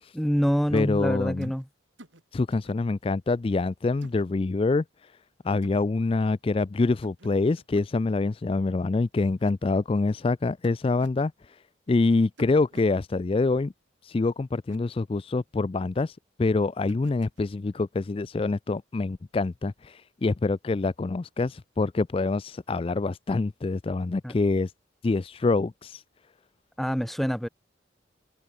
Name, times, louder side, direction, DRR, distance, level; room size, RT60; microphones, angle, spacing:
voice 1, 0.1-1.7 24.2-24.3 26.8-27.5, equal, ahead, 0.9 m, -26 dB
voice 2, 0.7-1.5 2.3-5.1 5.4-11.6 11.9-13.7 14.0-24.7 25.0-26.0, left 3 dB, 30° left, 0.3 m, -26 dB
sound 1, 0.8-1.0 1.4-1.6 2.0-2.2 2.5-2.8 4.0-4.2 5.6-5.8 7.0-7.3 7.6-7.9 9.2-9.5 10.6-11.2 12.4-12.9 14.5-14.8 16.9-17.4, right 1 dB, 75° right, 4.4 m, -50 dB
head